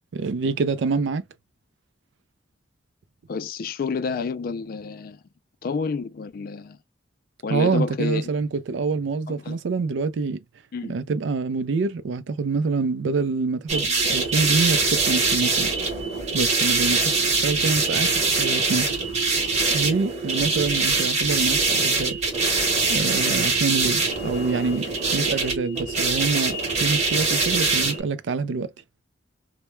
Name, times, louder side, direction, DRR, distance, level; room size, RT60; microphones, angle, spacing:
voice 1, 0.1-1.2 7.5-10.4 10.8-15.7 16.3-17.0 17.4-18.9 19.7-22.2 22.9-28.7, right 4 dB, 80° right, 0.4 m, -26 dB
voice 2, 3.3-5.2 5.6-6.8 7.4-8.3 9.3-9.6 10.7-11.0, left 5 dB, 50° left, 0.3 m, -29 dB
sound 1, 13.7-28.0, right 3 dB, 35° right, 0.9 m, -23 dB
2.1 x 2.1 x 3.0 m
head